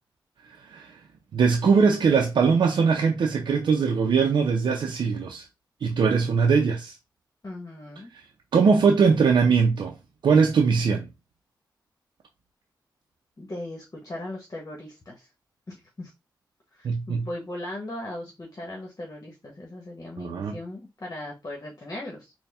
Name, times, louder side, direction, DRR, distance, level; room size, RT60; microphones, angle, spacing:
voice 1, 0.6-0.9 1.3-5.5 5.8-7.0 8.5-9.9 10.2-11.1 16.8-17.3 20.2-20.5, right 5 dB, 75° right, 0.5 m, -21 dB
voice 2, 7.4-8.1 13.4-15.3 15.7-16.1 16.7-22.3, left 1 dB, 45° left, 1.2 m, -38 dB
4.1 x 2.2 x 3.4 m
cardioid pair, 60°, 8 cm